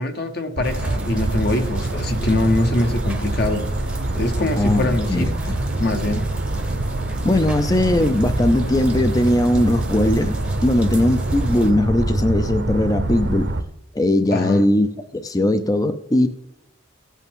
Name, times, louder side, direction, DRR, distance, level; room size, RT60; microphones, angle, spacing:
voice 1, 0.0-5.3 5.8-6.3 14.3-14.6, left 2 dB, 50° left, 0.9 m, -23 dB
sound 1, 0.6-11.7, right 2 dB, 5° right, 0.8 m, -39 dB
sound 2, 0.6-13.6, right 2 dB, 55° right, 0.8 m, -25 dB
voice 2, 4.6-5.6 7.2-13.5 13.9-16.3, left 1 dB, 20° left, 0.4 m, -19 dB
16.5 x 8.3 x 3.6 m
head